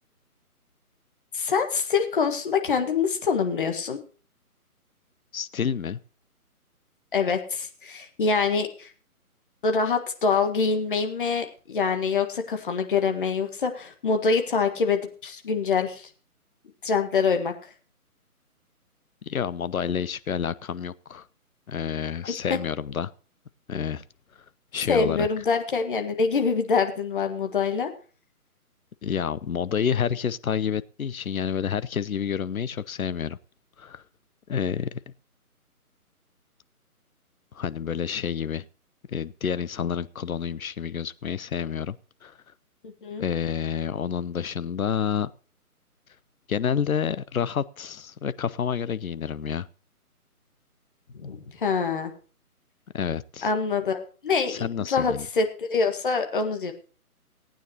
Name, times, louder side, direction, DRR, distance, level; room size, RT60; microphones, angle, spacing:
voice 1, 1.3-4.0 7.1-8.9 9.6-16.1 16.8-17.5 22.3-22.6 24.9-27.9 42.8-43.2 51.1-52.1 53.4-56.7, left 5 dB, 35° left, 6 dB, 1.6 m, -25 dB
voice 2, 5.3-6.0 19.2-21.3 21.7-23.1 23.7-24.0 24.7-25.3 29.0-33.4 33.8-34.0 34.5-35.0 37.5-38.6 39.1-42.0 42.2-42.3 43.2-45.3 46.5-49.7 52.9-53.5 54.5-55.3, left 7 dB, 65° left, 17 dB, 0.8 m, -29 dB
18.5 x 9.1 x 2.9 m, 0.37 s
figure-of-eight pair, 160°, 45 cm